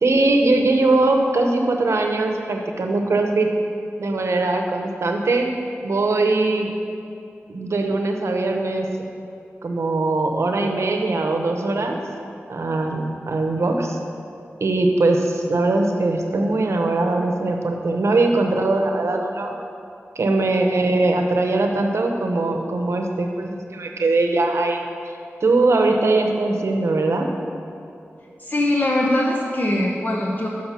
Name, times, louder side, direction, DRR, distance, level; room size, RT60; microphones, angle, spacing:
voice 1, 0.0-3.5 4.0-5.5 5.8-6.7 7.5-8.9 9.6-12.0 12.5-14.0 14.6-19.5 20.2-25.1 25.4-27.3, right 2 dB, 75° right, 3 dB, 0.8 m, -21 dB
voice 2, 28.4-30.5, left 1 dB, 40° left, -2 dB, 0.8 m, -21 dB
6.2 x 5.6 x 6.1 m, 2.6 s
wide cardioid pair, 70°, 5 cm